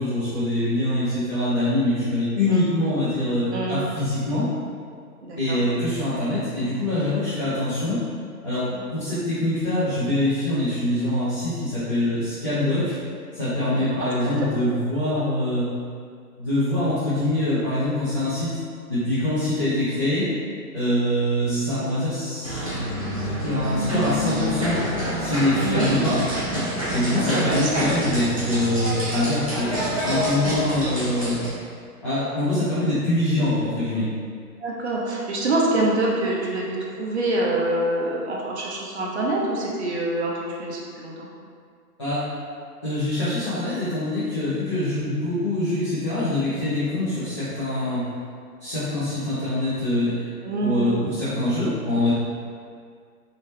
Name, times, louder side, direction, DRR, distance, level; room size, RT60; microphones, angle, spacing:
voice 1, 0.0-4.5 5.4-8.0 8.4-12.9 13.3-15.7 16.4-18.6 18.9-20.3 20.7-22.6 23.4-24.8 25.2-26.2 26.9-29.8 30.0-31.4 32.0-34.1 42.0-42.2 42.8-48.0 48.6-50.2 50.6-52.1, left 1 dB, 20° left, -15 dB, 0.6 m, -24 dB
voice 2, 5.2-5.6 8.7-8.8 13.7-14.5 25.5-25.9 27.1-27.9 34.6-40.3 40.6-41.3 50.4-51.1, right 2 dB, 45° right, -3 dB, 0.8 m, -26 dB
sound 1, 22.4-31.5, equal, 25° right, 0.5 m, -27 dB
5.4 x 2.9 x 3.2 m, 2.1 s
hypercardioid pair, 165°, 49 cm